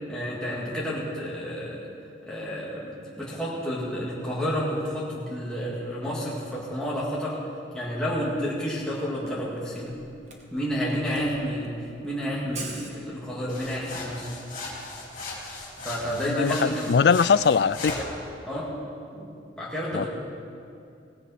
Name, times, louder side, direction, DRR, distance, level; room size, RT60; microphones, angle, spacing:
voice 1, 0.1-1.9 2.2-7.4 7.7-10.0 10.5-14.3 15.8-16.9 18.4-18.7 19.1-20.1, equal, 5° left, -7 dB, 2.1 m, -30 dB
Camera, 9.3-13.6, right 4 dB, 35° right, 1.5 m, -44 dB
sound 1, 13.5-18.1, left 2 dB, 40° left, 3.5 m, -37 dB
voice 2, 16.3-18.0 19.9-20.1, left 6 dB, 55° left, 17 dB, 0.3 m, -21 dB
17.5 x 16.0 x 4.2 m, 2.5 s
head